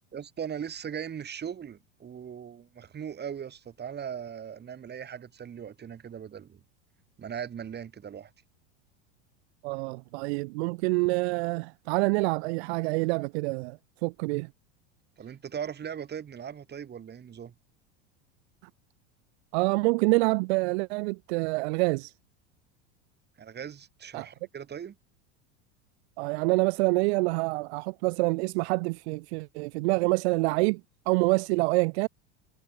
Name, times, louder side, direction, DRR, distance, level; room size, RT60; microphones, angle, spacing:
voice 1, 0.1-6.6 7.2-8.3 15.2-17.5 23.4-25.0, right 8 dB, 30° right, 3.5 m, -39 dB
voice 2, 9.6-14.5 19.5-22.1 24.1-24.3 26.2-30.8 31.1-32.1, right 27 dB, 65° right, 0.7 m, -26 dB
hypercardioid pair, 100°, 35 cm